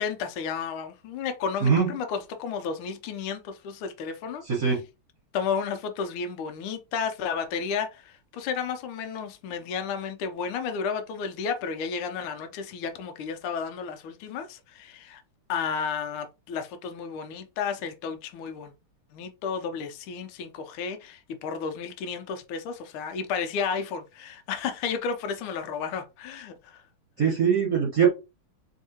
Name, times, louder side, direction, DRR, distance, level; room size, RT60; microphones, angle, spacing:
voice 1, 0.0-4.4 5.3-15.2 15.5-18.7 19.1-26.8, left 6 dB, 80° left, 1.5 m, -32 dB
voice 2, 1.6-1.9 4.5-4.8 27.2-28.1, right 7 dB, 45° right, 1.5 m, -22 dB
3.5 x 3.2 x 2.8 m
omnidirectional pair, 2.4 m